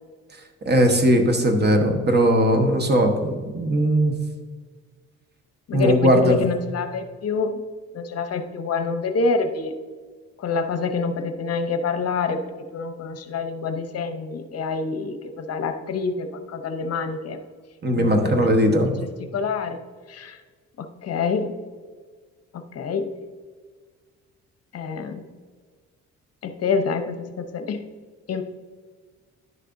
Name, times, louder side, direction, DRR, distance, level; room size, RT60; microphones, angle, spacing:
voice 1, 0.6-4.1 5.7-6.4 17.8-19.0, right 1 dB, 35° right, 5 dB, 1.1 m, -19 dB
voice 2, 5.7-7.6 7.9-9.8 10.4-17.4 17.9-19.8 20.1-20.4 20.8-21.5 22.5-23.1 24.7-25.3 26.4-27.8 28.3-28.4, left 4 dB, 55° left, 7 dB, 0.7 m, -27 dB
10.5 x 6.6 x 2.6 m, 1.5 s
cardioid pair, 90°, 30 cm